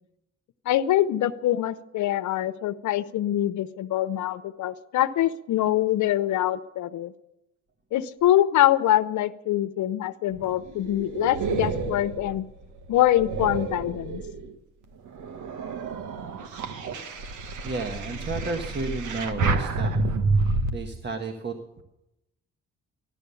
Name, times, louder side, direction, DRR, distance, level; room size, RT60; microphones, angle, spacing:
voice 1, 0.7-7.1 7.9-12.5 12.9-14.2, left 13 dB, 75° left, 12 dB, 0.7 m, -24 dB
sound 1, 10.3-14.5 15.1-20.7, right 3 dB, 80° right, 1.6 m, -29 dB
voice 2, 17.6-20.2 20.7-21.8, right 3 dB, 35° right, 5 dB, 1.4 m, -32 dB
14.5 x 12.0 x 6.9 m, 0.89 s
cardioid pair, 90°, 30 cm